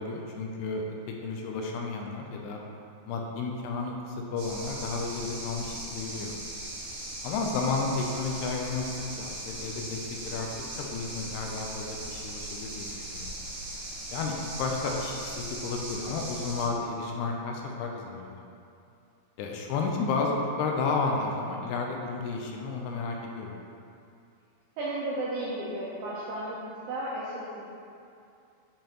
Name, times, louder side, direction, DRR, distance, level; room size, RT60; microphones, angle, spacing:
voice 1, 0.0-2.6 3.1-6.3 7.2-8.9 9.2-10.5 10.8-13.3 14.1-14.3 14.6-18.4 19.4-23.5, left 4 dB, 80° left, 1 dB, 2.5 m, -32 dB
sound 1, 4.4-16.7, right 1 dB, 55° right, 2.3 m, -39 dB
voice 2, 24.8-26.6 26.9-27.6, right 1 dB, 80° right, -7 dB, 2.1 m, -33 dB
7.5 x 5.1 x 2.9 m, 2.5 s
omnidirectional pair, 4.8 m